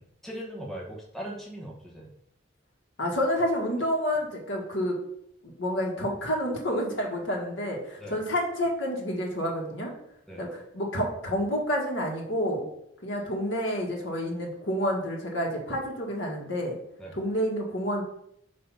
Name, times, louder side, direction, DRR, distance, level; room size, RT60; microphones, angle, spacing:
voice 1, 0.0-2.2 8.0-8.2 10.3-10.5 17.0-17.2, equal, ahead, -3 dB, 1.0 m, -40 dB
voice 2, 3.0-4.9 5.4-9.9 10.4-12.7 13.0-16.7 17.1-18.0, equal, 80° left, -1 dB, 1.7 m, -29 dB
6.8 x 2.8 x 5.6 m, 0.73 s
head